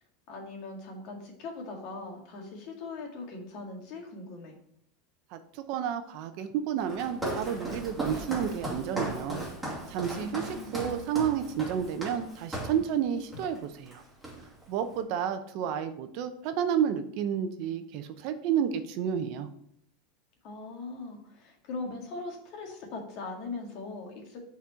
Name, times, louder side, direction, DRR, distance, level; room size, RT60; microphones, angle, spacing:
voice 1, 0.3-4.5 10.2-10.8 20.4-24.4, left 3 dB, 50° left, 2 dB, 1.8 m, -40 dB
voice 2, 5.3-9.4 9.9-14.0 14.7-19.5, right 8 dB, 55° right, 9 dB, 0.7 m, -31 dB
Walk footsteps, 6.9-12.8 13.3-13.6 13.9-14.7, right 1 dB, ahead, 2.4 m, -37 dB
6.1 x 4.4 x 5.6 m, 0.71 s
supercardioid pair, 145°, 0 cm